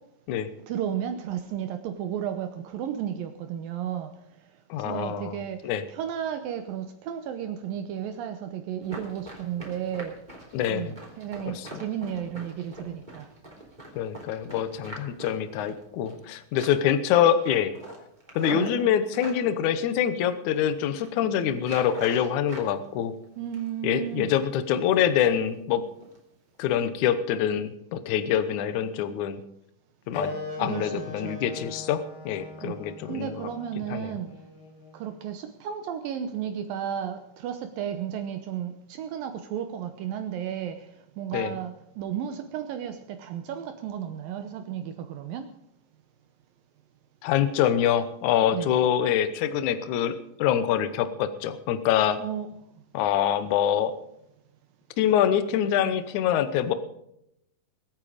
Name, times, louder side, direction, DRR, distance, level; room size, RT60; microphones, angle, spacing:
voice 1, 0.7-4.1 4.9-5.6 5.9-10.1 10.7-13.2 18.5-18.7 23.4-24.3 30.6-31.4 32.6-32.8 33.1-34.3 34.9-38.7 39.0-40.8 41.2-45.5 48.5-48.8 52.2-52.5, right 9 dB, 75° right, 7 dB, 2.5 m, -33 dB
voice 2, 4.7-5.8 10.5-10.9 11.5-11.9 14.0-17.7 18.4-23.1 23.8-25.8 26.6-29.4 30.1-30.3 30.6-33.5 33.8-34.2 41.3-41.5 47.2-50.1 50.4-52.2 52.9-53.9 55.0-56.7, left 9 dB, 70° left, 11 dB, 2.0 m, -25 dB
Run, 8.8-16.2 16.5-17.0 17.3-19.4 20.0-20.6 20.8-21.1 21.6-22.7 23.0-23.8 24.2-24.4 24.8-25.1 25.4-25.6 26.0-26.2 26.5-26.7, right 1 dB, 10° right, 3.2 m, -43 dB
Wind instrument woodwind instrument, 30.1-35.2, left 3 dB, 85° left, 4.2 m, -39 dB
22.0 x 9.0 x 5.1 m, 0.78 s
omnidirectional pair, 4.4 m